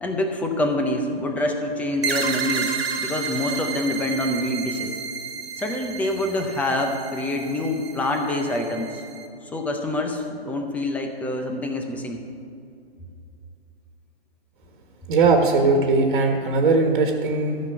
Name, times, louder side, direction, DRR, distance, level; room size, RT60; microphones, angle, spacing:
voice 1, 0.0-5.0 5.6-8.9 9.5-12.2, left 1 dB, 5° left, 4 dB, 0.5 m, -26 dB
sound 1, 2.0-9.3, right 6 dB, 75° right, 1.7 m, -31 dB
voice 2, 15.1-17.6, right 3 dB, 55° right, 3 dB, 1.5 m, -19 dB
13.5 x 5.9 x 7.9 m, 2.5 s
hypercardioid pair, 140°, 31 cm